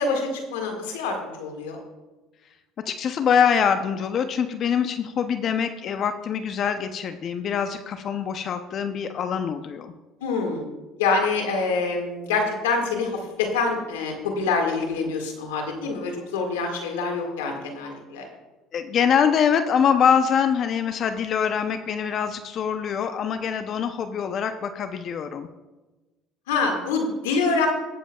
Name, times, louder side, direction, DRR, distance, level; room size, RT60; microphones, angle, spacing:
voice 1, 0.0-1.8 10.2-10.7 11.0-18.3 26.5-27.7, left 4 dB, 90° left, 2 dB, 1.8 m, -26 dB
voice 2, 2.9-9.9 18.7-25.5, left 7 dB, 50° left, 9 dB, 0.6 m, -24 dB
20.0 x 7.2 x 2.3 m, 1.1 s
supercardioid pair, 80°, 0 cm